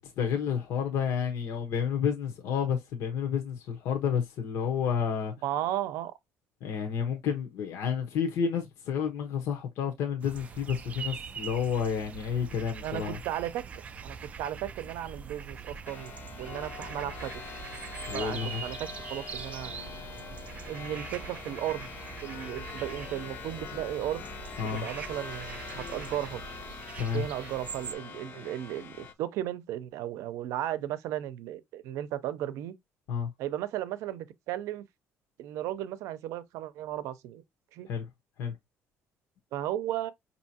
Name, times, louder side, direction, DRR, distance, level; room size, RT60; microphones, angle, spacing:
voice 1, 0.0-5.3 6.6-13.2 18.1-18.6 24.6-24.9 27.0-27.2 33.1-33.3 37.9-38.1 38.4-38.6, left 7 dB, 60° left, 0.9 m, -30 dB
voice 2, 5.4-6.1 12.8-13.6 14.0-17.3 18.1-19.7 20.7-21.9 22.2-24.3 24.6-26.4 27.1-32.7 33.4-34.9 35.4-37.4 37.7-37.9 39.5-40.1, right 12 dB, 70° right, 0.6 m, -35 dB
sound 1, 10.2-27.9, right 6 dB, 25° right, 0.3 m, -43 dB
sound 2, 15.9-29.1, left 5 dB, 40° left, 0.6 m, -43 dB
5.5 x 2.8 x 2.8 m
cardioid pair, 175°, 5 cm